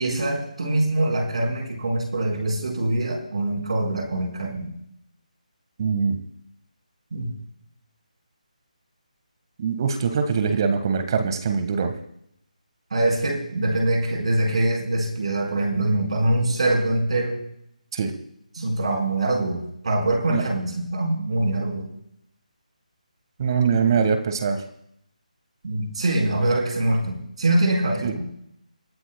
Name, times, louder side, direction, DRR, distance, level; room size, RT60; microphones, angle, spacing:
voice 1, 0.0-4.7 7.1-7.3 12.9-17.4 18.5-21.9 25.6-28.3, right 1 dB, 50° right, 2 dB, 4.5 m, -24 dB
voice 2, 5.8-6.2 9.6-11.9 17.9-18.1 20.3-20.4 23.4-24.6 28.0-28.1, right 6 dB, 35° right, 7 dB, 1.5 m, -22 dB
29.5 x 12.5 x 2.3 m, 0.76 s
figure-of-eight pair, 155°, 4 cm